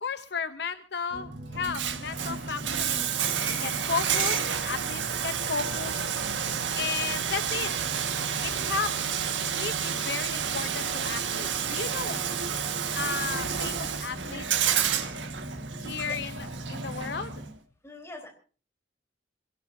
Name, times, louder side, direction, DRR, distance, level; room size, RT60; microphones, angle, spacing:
voice 1, 0.0-3.2 3.6-6.1 6.7-7.7 8.4-12.2 12.9-14.6 15.8-17.4, left 5 dB, 60° left, 10 dB, 0.8 m, -34 dB
sound 1, 1.1-17.5, right 2 dB, 55° right, 3.8 m, -41 dB
Bathtub (filling or washing), 1.5-17.5, right 8 dB, 80° right, 1.7 m, -30 dB
voice 2, 16.1-16.5 17.8-18.3, left 1 dB, 15° left, 3 dB, 4.1 m, -44 dB
26.5 x 17.0 x 2.7 m, 0.39 s
head